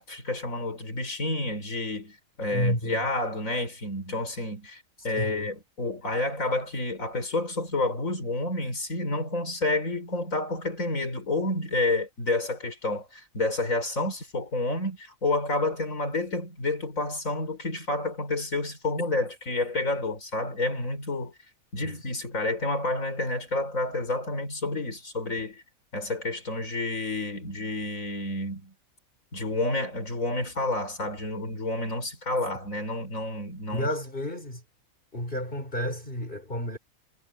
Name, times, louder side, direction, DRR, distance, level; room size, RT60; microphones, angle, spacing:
voice 1, 0.0-21.3 21.7-25.6 25.9-28.7 29.3-33.9, left 2 dB, 70° left, 5.3 m, -29 dB
voice 2, 2.5-3.0 5.2-5.5 21.8-22.0 33.7-34.6 35.1-36.8, left 1 dB, 40° left, 5.3 m, -31 dB
omnidirectional pair, 1.4 m